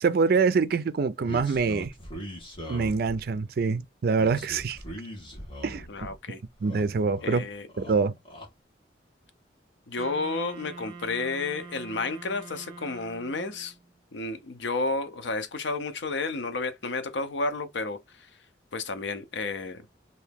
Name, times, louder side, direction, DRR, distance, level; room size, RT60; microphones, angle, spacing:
voice 1, 0.0-1.9 2.7-4.8 5.6-5.8 6.6-7.5 7.8-8.1, right 4 dB, 55° right, 0.4 m, -25 dB
sound 1, 1.2-3.4 4.2-6.1 6.5-7.4 7.7-8.5, equal, 30° left, 1.2 m, -41 dB
voice 2, 5.9-6.4 7.2-7.7 9.9-13.7 14.1-18.3 18.7-19.8, left 3 dB, 85° left, 0.7 m, -31 dB
Wind instrument woodwind instrument, 10.0-13.8, right 4 dB, 30° right, 1.0 m, -45 dB
2.9 x 2.6 x 3.5 m
head